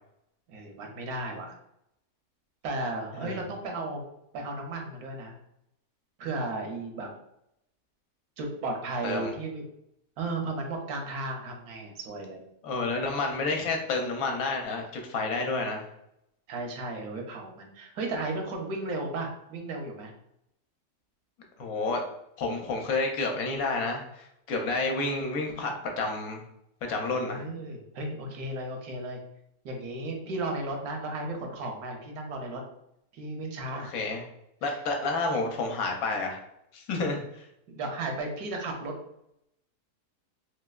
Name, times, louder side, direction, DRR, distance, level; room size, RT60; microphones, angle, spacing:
voice 1, 0.5-1.5 2.6-4.0 4.3-5.3 6.2-7.1 8.4-9.6 10.2-12.4 16.5-20.1 27.1-29.2 29.6-32.6 33.1-33.9 37.7-38.9, right 2 dB, 80° right, 2 dB, 1.2 m, -34 dB
voice 2, 12.6-15.9 21.6-22.0 22.4-26.4 26.9-27.5 33.7-34.2 34.6-36.4 36.7-37.5, left 3 dB, 70° left, 2 dB, 1.0 m, -30 dB
3.2 x 2.9 x 2.3 m, 0.78 s
omnidirectional pair, 1.6 m